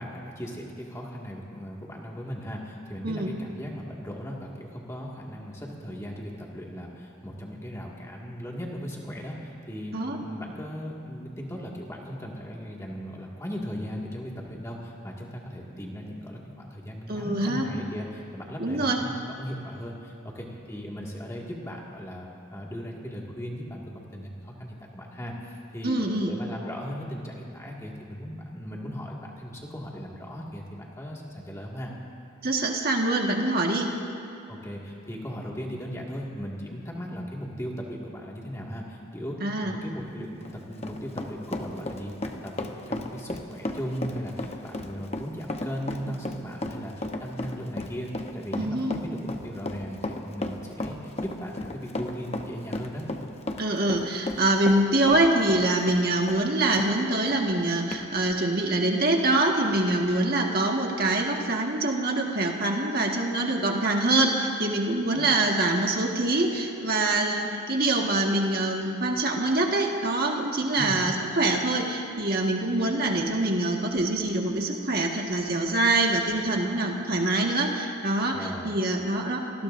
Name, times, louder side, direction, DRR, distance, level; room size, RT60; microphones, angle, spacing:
voice 1, 0.0-9.9 10.2-23.8 24.1-25.9 26.2-31.9 34.5-53.1 65.1-65.2 70.8-71.0 78.3-78.8, equal, 15° left, -3 dB, 2.0 m, -37 dB
voice 2, 17.1-17.6 18.6-19.0 25.8-26.3 32.4-33.9 39.4-39.8 48.6-49.0 53.6-79.6, right 2 dB, 45° right, 1 dB, 1.6 m, -25 dB
Run, 40.3-56.9 57.3-57.4 57.9-58.0, left 2 dB, 30° left, 0.9 m, -34 dB
27.5 x 20.0 x 2.6 m, 2.7 s
head